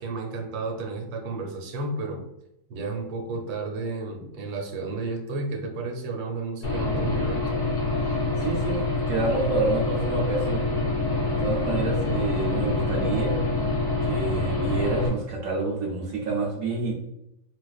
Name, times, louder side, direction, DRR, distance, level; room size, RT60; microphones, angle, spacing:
voice 1, 0.0-2.2 2.7-7.4, right 3 dB, 85° right, 1 dB, 1.5 m, -32 dB
Aircraft / Engine, 6.6-15.1, left 2 dB, 30° left, 0.7 m, -26 dB
voice 2, 8.0-8.8 9.1-10.6 11.3-13.4 14.0-16.9, right 3 dB, 70° right, -2 dB, 0.8 m, -28 dB
4.0 x 2.5 x 2.4 m, 0.84 s
omnidirectional pair, 2.1 m